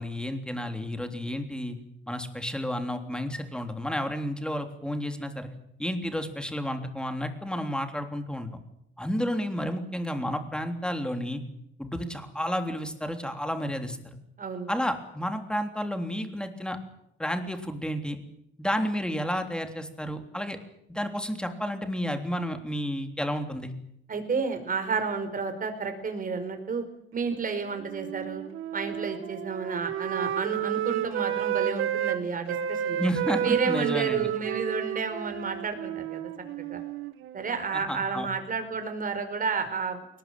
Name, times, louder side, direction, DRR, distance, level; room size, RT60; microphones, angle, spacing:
voice 1, 0.0-1.8 2.1-5.5 5.8-8.5 9.0-11.4 11.8-14.2 14.7-16.8 17.2-18.2 18.6-20.6 20.9-23.7 33.0-34.3 37.7-38.3, equal, 5° left, 6 dB, 3.4 m, -31 dB
voice 2, 14.4-14.7 24.1-26.8 27.1-28.4 28.7-33.0 33.4-36.2 36.6-36.8 37.3-40.0, right 5 dB, 45° right, 7 dB, 5.1 m, -31 dB
Wind instrument woodwind instrument, 27.3-32.2 32.5-37.8, right 10 dB, 85° right, 1.7 m, -31 dB
21.0 x 19.5 x 9.2 m, 0.80 s
cardioid pair, 90°, 20 cm